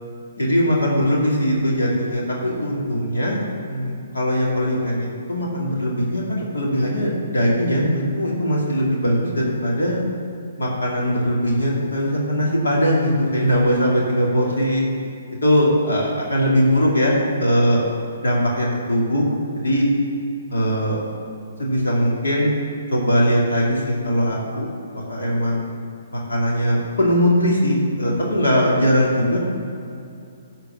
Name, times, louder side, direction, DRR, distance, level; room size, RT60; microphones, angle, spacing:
voice 1, 0.4-3.4 3.7-10.0 10.6-14.8 15.4-17.8 18.2-19.3 19.6-19.9 20.5-21.0 21.6-22.6 22.9-24.7 25.1-25.7 26.1-29.4, equal, 75° left, -4 dB, 2.4 m, -20 dB
12.0 x 4.5 x 7.4 m, 2.6 s
figure-of-eight pair, 130°, 0 cm